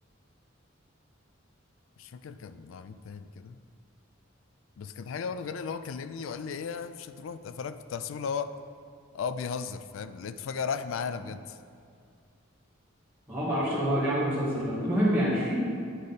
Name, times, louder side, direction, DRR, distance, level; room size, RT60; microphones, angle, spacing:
voice 1, 2.0-3.6 4.8-8.5 9.1-11.6, left 6 dB, 75° left, 12 dB, 0.3 m, -35 dB
voice 2, 13.3-15.6, equal, 10° right, -10 dB, 1.8 m, -26 dB
8.6 x 4.9 x 4.1 m, 2.3 s
head